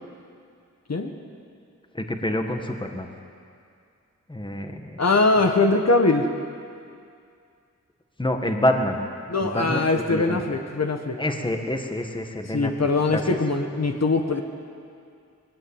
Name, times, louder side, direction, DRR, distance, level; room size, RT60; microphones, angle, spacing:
voice 1, 1.9-3.1 4.3-5.0 8.2-9.0 9.4-10.4 11.2-13.3, left 1 dB, 15° left, 4 dB, 1.7 m, -27 dB
voice 2, 5.0-6.3 9.3-11.2 12.5-14.4, left 3 dB, 55° left, 4 dB, 1.6 m, -22 dB
21.0 x 17.0 x 8.9 m, 2.3 s
wide cardioid pair, 95°, 30 cm